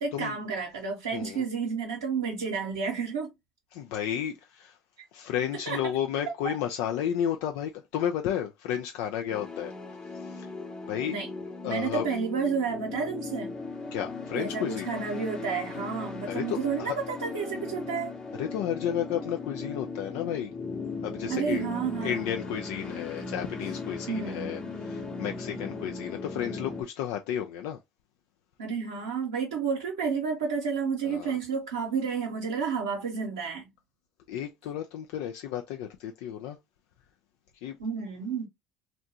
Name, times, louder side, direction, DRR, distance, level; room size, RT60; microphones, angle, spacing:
voice 1, 0.0-3.3 5.7-5.8 6.3-6.6 11.1-11.3 11.6-13.5 14.3-18.1 21.3-22.3 24.1-24.6 28.6-33.7 37.8-38.5, right 5 dB, 85° right, 0.7 m, -31 dB
voice 2, 1.1-1.4 3.7-4.8 5.1-9.7 10.1-10.5 10.9-11.2 11.6-12.1 13.9-14.9 16.2-17.0 18.4-20.6 21.0-21.7 22.0-27.8 31.0-31.4 34.3-36.6 37.6-37.8, left 10 dB, 70° left, 0.3 m, -32 dB
sound 1, 9.3-26.8, left 3 dB, 30° left, 0.8 m, -38 dB
2.6 x 2.1 x 2.7 m
hypercardioid pair, 65°, 3 cm